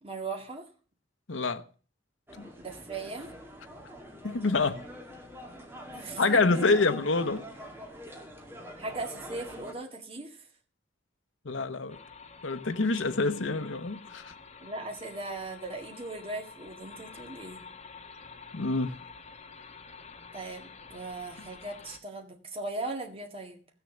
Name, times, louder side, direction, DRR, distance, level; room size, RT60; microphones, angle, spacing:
voice 1, 0.0-0.7 2.6-3.3 5.9-6.7 8.8-10.4 14.6-17.6 20.3-23.6, right 2 dB, 30° right, 2.0 m, -38 dB
voice 2, 1.3-1.6 2.4-2.5 4.2-4.8 6.2-7.4 11.4-12.0 12.4-14.3 18.5-18.9, left 3 dB, 75° left, 0.9 m, -27 dB
sound 1, 2.3-9.7, equal, 10° right, 2.1 m, -44 dB
sound 2, 11.9-22.0, left 5 dB, 35° left, 1.3 m, -49 dB
14.5 x 7.0 x 7.1 m
head